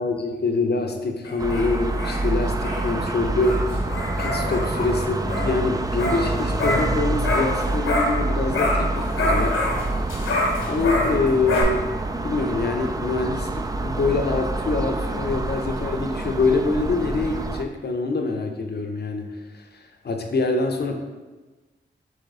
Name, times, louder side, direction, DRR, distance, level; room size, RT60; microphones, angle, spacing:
voice 1, 0.0-3.8 4.2-9.5 9.9-10.0 10.6-11.9 12.2-19.6 20.0-20.9, left 3 dB, 55° left, 4 dB, 0.6 m, -25 dB
sound 1, 1.2-8.3 8.5-11.6, left 2 dB, 80° left, 0.9 m, -27 dB
sound 2, 1.4-17.6, right 2 dB, 20° right, 0.3 m, -27 dB
4.2 x 3.1 x 3.7 m, 1.2 s
cardioid pair, 40°, 20 cm